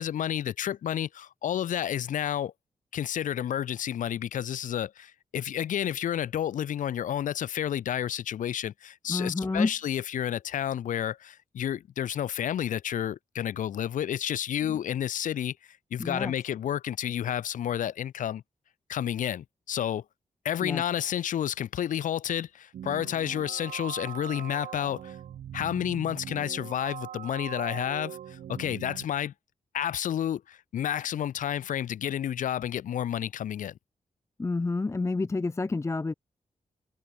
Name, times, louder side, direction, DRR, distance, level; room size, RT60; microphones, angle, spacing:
voice 1, 0.0-2.5 2.9-15.6 15.9-18.4 18.9-20.0 20.4-25.2 25.5-29.3 29.7-33.7, left 10 dB, 80° left, 0.4 m, -30 dB
voice 2, 9.1-9.7 14.7-14.8 16.0-16.3 20.6-20.8 34.4-36.1, left 3 dB, 20° left, 0.5 m, -29 dB
sound 1, 22.7-29.1, right 10 dB, 75° right, 0.4 m, -41 dB
cardioid pair, 90°, 13 cm